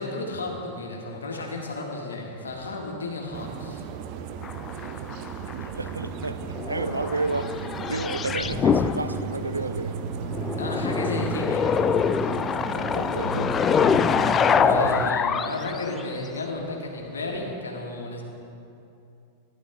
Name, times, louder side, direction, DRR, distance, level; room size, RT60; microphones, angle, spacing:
voice 1, 0.0-3.8 6.9-7.1 10.6-11.8 14.5-18.2, left 2 dB, 70° left, 0 dB, 1.9 m, -32 dB
sound 1, 3.3-15.1, right 7 dB, 45° right, 0.7 m, -34 dB
sound 2, 4.4-5.9 6.2-9.6 10.3-16.1 17.4-17.5, left 7 dB, 25° left, 0.4 m, -25 dB
voice 2, 5.5-10.0 12.9-13.6 14.8-15.0, right 2 dB, 80° right, 11 dB, 0.5 m, -31 dB
15.5 x 11.0 x 3.8 m, 2.6 s
figure-of-eight pair, 90°, 0 cm